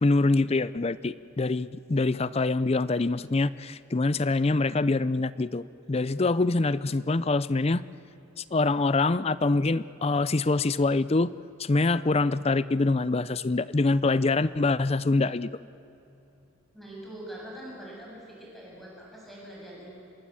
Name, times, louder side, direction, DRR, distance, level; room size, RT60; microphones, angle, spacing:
voice 1, 0.0-7.8 8.4-11.3 11.6-15.5, left 3 dB, 30° left, 17 dB, 0.5 m, -25 dB
voice 2, 16.7-20.0, right 1 dB, ahead, -5 dB, 8.0 m, -43 dB
26.5 x 22.0 x 8.6 m, 2.8 s
head